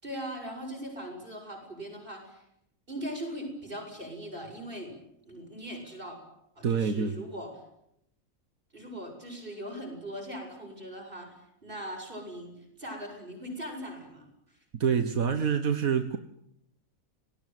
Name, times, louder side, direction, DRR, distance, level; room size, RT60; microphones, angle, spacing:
voice 1, 0.0-2.4 2.9-4.9 5.3-6.2 6.6-7.5 8.7-11.3 11.6-14.3, equal, 40° right, 2 dB, 7.8 m, -40 dB
voice 2, 6.6-7.2 14.8-16.2, right 6 dB, 80° right, 8 dB, 1.8 m, -26 dB
29.5 x 19.5 x 9.4 m, 0.81 s
omnidirectional pair, 1.4 m